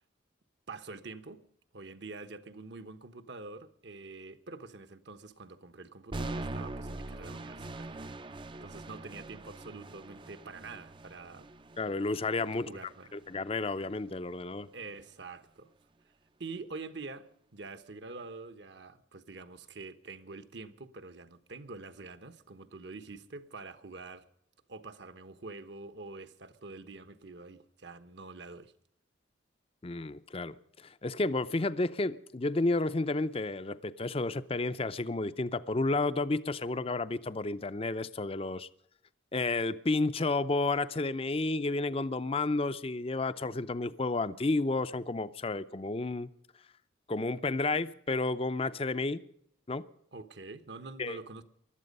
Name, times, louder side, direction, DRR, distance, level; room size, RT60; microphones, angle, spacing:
voice 1, 0.7-1.4 1.7-8.0 8.6-11.5 12.7-13.1 14.7-15.7 16.4-17.3 17.5-24.2 24.7-28.7 50.1-51.4, right 3 dB, 60° right, 1.2 m, -46 dB
sound 1, 6.1-14.1, right 2 dB, 25° right, 0.5 m, -43 dB
voice 2, 11.8-12.7 13.1-14.7 29.8-38.7 39.3-46.3 47.1-49.2 49.7-49.8 51.0-51.2, left 2 dB, 30° left, 0.5 m, -31 dB
20.0 x 12.5 x 5.4 m
head